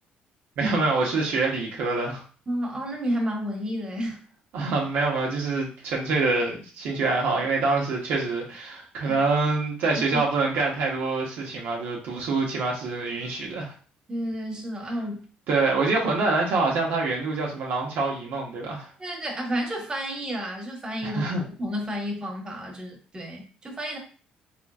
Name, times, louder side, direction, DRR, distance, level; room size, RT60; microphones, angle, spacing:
voice 1, 0.6-2.2 4.5-13.7 15.5-18.9 21.0-21.4, right 3 dB, 75° right, -2 dB, 1.0 m, -25 dB
voice 2, 2.5-4.2 9.0-9.2 10.1-10.2 14.1-15.3 19.0-24.0, equal, 25° right, -1 dB, 1.4 m, -31 dB
3.6 x 3.4 x 2.4 m, 0.39 s
supercardioid pair, 80°, 3 cm